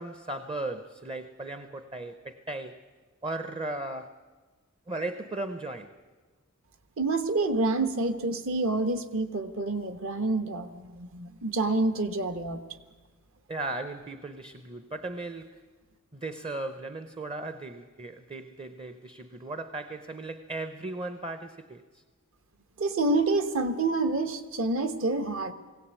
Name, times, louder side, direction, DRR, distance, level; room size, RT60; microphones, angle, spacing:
voice 1, 0.0-2.8 3.2-4.2 4.9-5.9 13.5-15.6 16.1-22.0, right 2 dB, 25° right, 0.7 m, -37 dB
voice 2, 7.0-12.6 22.8-25.5, right 2 dB, 60° right, 1.2 m, -28 dB
19.5 x 17.0 x 8.3 m
head